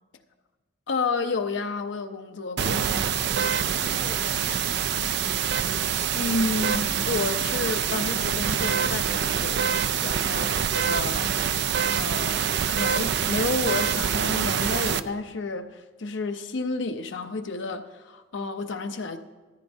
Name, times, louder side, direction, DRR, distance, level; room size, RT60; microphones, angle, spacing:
voice 1, 0.9-2.8 5.5-5.8 6.1-10.5 10.7-19.2, left 3 dB, 65° left, 0.7 m, -31 dB
sound 1, 2.6-15.0, right 8 dB, 60° right, 0.4 m, -25 dB
voice 2, 3.3-5.3 10.3-10.6, left 3 dB, 40° left, 0.9 m, -45 dB
16.0 x 13.5 x 2.7 m
head